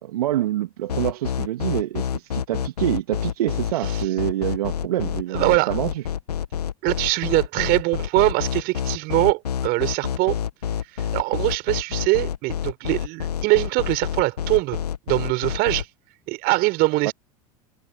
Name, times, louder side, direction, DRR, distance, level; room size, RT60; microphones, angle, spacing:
voice 1, 0.0-6.0 17.0-17.1, right 13 dB, 75° right, 2.3 m, -26 dB
sound 1, 0.9-15.8, left 8 dB, 80° left, 1.8 m, -27 dB
voice 2, 5.3-5.7 6.8-10.3 11.1-14.8 15.1-15.9 16.3-17.1, right 22 dB, 55° right, 5.3 m, -22 dB
hypercardioid pair, 80°, 20 cm